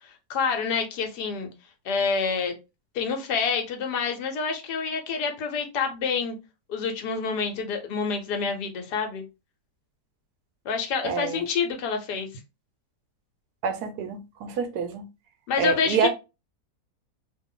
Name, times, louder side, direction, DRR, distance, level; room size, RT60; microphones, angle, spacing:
voice 1, 0.0-1.5 1.8-2.5 2.9-6.4 6.7-9.2 10.6-12.3 15.5-16.1, left 5 dB, 85° left, 1.4 m, -27 dB
voice 2, 11.0-11.4 13.6-15.0 15.6-16.1, right 6 dB, 80° right, 1.2 m, -27 dB
2.8 x 2.5 x 3.7 m
omnidirectional pair, 1.7 m